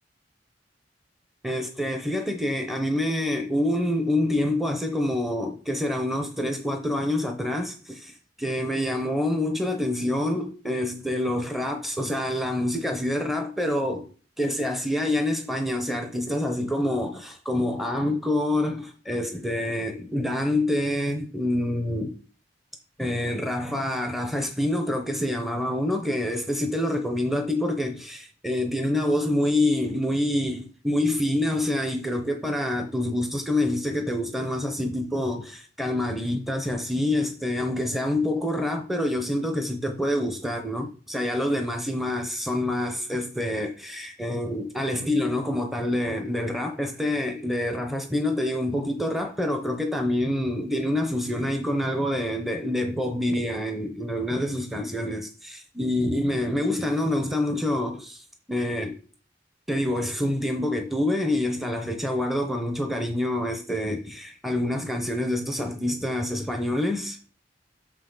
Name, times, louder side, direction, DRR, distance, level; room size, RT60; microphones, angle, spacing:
voice 1, 1.4-14.1 14.4-22.1 23.0-59.0 59.7-67.3, left 1 dB, ahead, 0.7 m, -27 dB
6.7 x 5.7 x 3.9 m
head